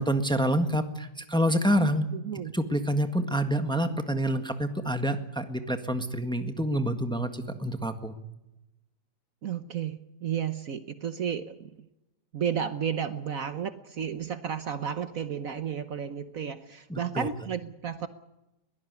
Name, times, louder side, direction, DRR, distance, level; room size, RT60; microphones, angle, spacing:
voice 1, 0.0-2.0 2.5-8.1 16.9-17.3, equal, 5° left, 7 dB, 1.5 m, -27 dB
voice 2, 2.1-2.5 9.4-11.9 12.3-18.1, right 8 dB, 55° right, 11 dB, 1.3 m, -32 dB
22.0 x 17.5 x 9.5 m, 0.93 s
omnidirectional pair, 1.8 m